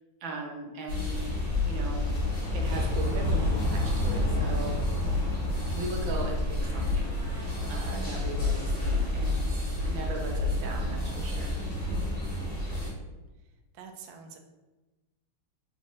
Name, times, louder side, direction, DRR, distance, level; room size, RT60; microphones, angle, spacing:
voice 1, 0.2-2.1 2.5-4.8 5.7-11.5, right 2 dB, 70° right, 1 dB, 1.5 m, -38 dB
sound 1, 0.9-12.9, left 1 dB, 40° left, 1.9 m, -30 dB
sound 2, 1.5-9.9 10.2-12.1, left 4 dB, 75° left, 1.0 m, -34 dB
voice 2, 13.4-14.4, right 6 dB, 90° right, 4 dB, 0.8 m, -47 dB
4.4 x 3.5 x 2.9 m, 1.1 s
omnidirectional pair, 2.3 m